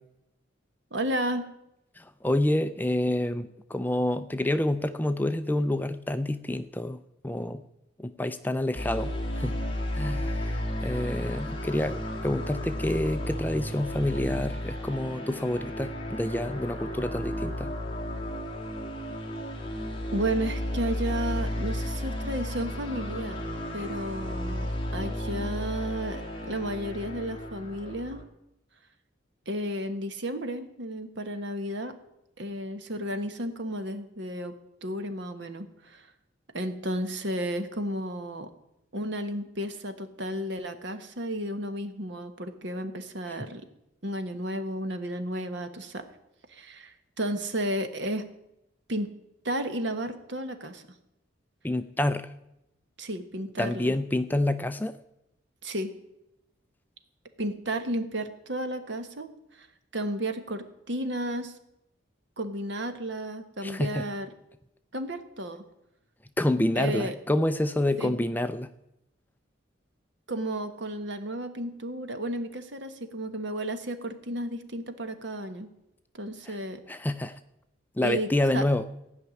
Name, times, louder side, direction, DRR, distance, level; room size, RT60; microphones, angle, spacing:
voice 1, 0.9-1.5 20.1-23.4 23.7-28.2 29.5-31.9 32.4-34.5 34.8-36.1 36.5-38.5 38.9-43.7 44.0-46.0 46.5-48.3 48.9-49.1 49.4-50.8 53.0-53.9 55.6-55.9 57.4-59.7 59.9-61.6 62.4-64.3 64.9-65.6 66.7-67.1 68.0-68.1 70.3-75.7 76.1-76.8 78.0-78.6, right 1 dB, 65° right, 8 dB, 1.3 m, -33 dB
voice 2, 2.0-7.0 7.2-7.6 8.0-9.6 9.9-17.7 51.6-52.3 53.6-54.9 63.6-64.0 66.4-68.7 76.5-76.6 76.9-77.4 78.0-78.8, left 1 dB, 10° left, 11 dB, 0.4 m, -28 dB
sound 1, 8.7-28.2, equal, 25° left, 1.8 m, -33 dB
16.0 x 5.8 x 9.6 m, 0.86 s
head